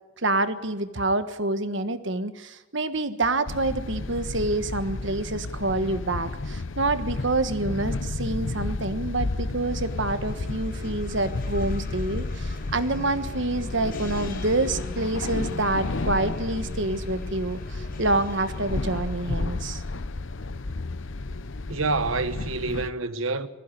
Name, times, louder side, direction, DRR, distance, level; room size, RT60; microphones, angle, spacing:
voice 1, 0.2-19.8, right 2 dB, 60° right, 1.4 m, -27 dB
sound 1, 3.5-22.9, left 2 dB, 65° left, 0.8 m, -32 dB
sound 2, 9.6-19.3, left 1 dB, 45° left, 4.6 m, -42 dB
voice 2, 21.7-23.5, right 3 dB, 75° right, 1.4 m, -27 dB
20.5 x 15.0 x 9.9 m
head